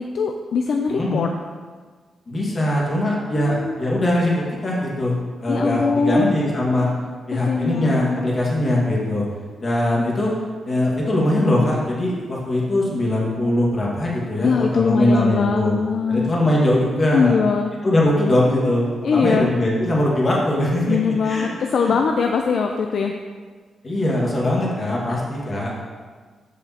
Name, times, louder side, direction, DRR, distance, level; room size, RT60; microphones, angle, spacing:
voice 1, 0.0-1.3 3.3-3.8 5.5-6.4 7.3-8.3 14.4-16.3 17.1-17.7 19.0-19.5 20.9-23.1 25.1-25.2, left 5 dB, 55° left, 3 dB, 0.4 m, -22 dB
voice 2, 0.9-1.3 2.3-6.9 7.3-9.2 9.6-10.3 10.7-15.7 16.1-17.4 17.8-21.0 21.2-21.5 21.8-21.9 23.8-25.7, left 1 dB, 30° left, -4 dB, 1.8 m, -21 dB
13.0 x 5.0 x 2.9 m, 1.5 s
wide cardioid pair, 165°, 0 cm